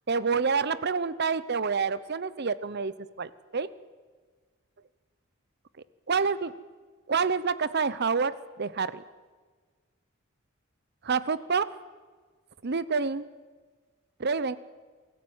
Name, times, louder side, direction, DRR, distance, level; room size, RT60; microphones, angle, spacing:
voice 1, 0.1-3.7 6.1-6.5 7.1-9.0 11.0-11.7 12.6-13.3 14.2-14.6, right 5 dB, 50° right, 16 dB, 0.8 m, -28 dB
23.5 x 14.5 x 8.9 m, 1.5 s
head